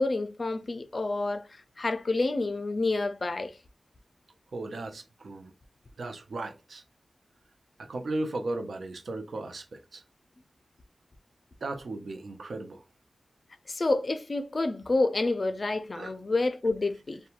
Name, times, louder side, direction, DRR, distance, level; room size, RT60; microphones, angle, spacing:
voice 1, 0.0-1.4 1.8-3.5 13.7-17.2, left 2 dB, 45° left, 0.4 m, -28 dB
voice 2, 4.5-5.5 6.0-6.8 7.8-10.0 11.6-12.8 15.9-16.1, right 2 dB, 75° right, 0.5 m, -36 dB
2.9 x 2.2 x 2.3 m
wide cardioid pair, 75°, 0 cm